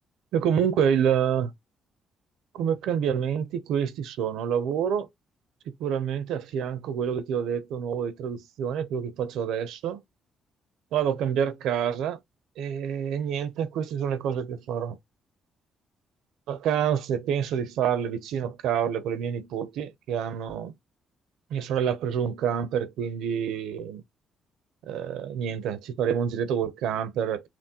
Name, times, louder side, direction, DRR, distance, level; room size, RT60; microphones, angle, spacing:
voice 1, 0.3-1.5 2.5-5.1 5.8-10.0 10.9-12.2 12.6-15.0 16.5-20.7 21.5-24.0 24.9-27.5, right 8 dB, 85° right, 0.6 m, -27 dB
5.9 x 2.1 x 2.8 m
cardioid pair, 90°, 0 cm